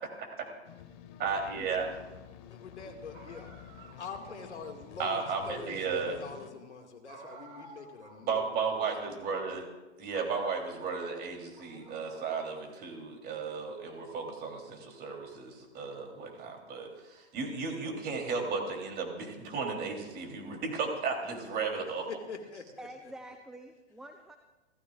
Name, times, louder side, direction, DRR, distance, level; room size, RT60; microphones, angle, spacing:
voice 1, 0.0-0.5 1.2-1.9 5.0-6.2 8.2-9.7 10.0-22.1, right 5 dB, 30° right, 2 dB, 3.5 m, -34 dB
sound 1, 0.6-6.5, left 10 dB, 45° left, 1.7 m, -50 dB
voice 2, 2.5-3.5 4.0-8.7 21.5-22.9, left 4 dB, 80° left, 5 dB, 2.3 m, -45 dB
sound 2, 3.1-4.9 7.1-8.3 8.6-8.7 9.5-9.8 10.1-11.1 11.5-12.7, right 3 dB, 45° right, 5.0 m, -53 dB
voice 3, 22.8-24.4, right 1 dB, ahead, 6 dB, 0.8 m, -47 dB
29.5 x 14.5 x 2.5 m, 1.1 s
figure-of-eight pair, 110°, 34 cm